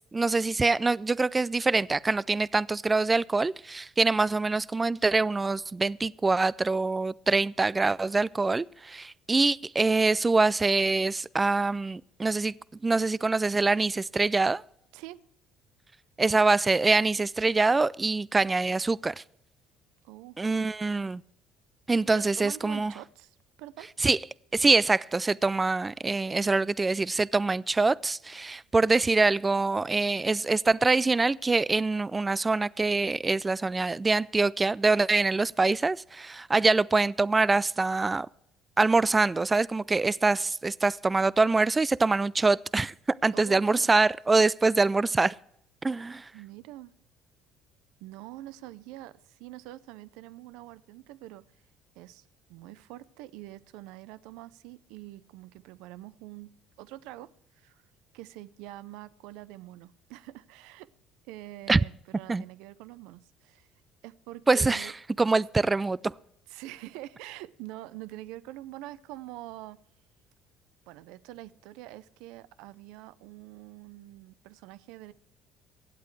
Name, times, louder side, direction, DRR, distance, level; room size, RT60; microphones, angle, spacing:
voice 1, 0.1-12.5 12.8-14.6 16.2-19.2 20.4-21.2 21.9-22.9 24.0-24.2 24.5-38.3 38.8-45.3 45.8-46.3 61.7-61.8 62.3-62.4 64.5-64.9 65.2-66.1, right 3 dB, 20° right, 0.3 m, -24 dB
voice 2, 20.0-20.4 22.1-23.9 43.3-43.9 46.3-46.9 48.0-51.4 52.0-56.5 56.8-57.3 57.6-57.8 58.1-60.9 61.3-63.7 64.0-64.9 66.5-69.8 70.9-75.1, right 16 dB, 80° right, 0.5 m, -45 dB
24.0 x 8.3 x 3.2 m
supercardioid pair, 85°, 0 cm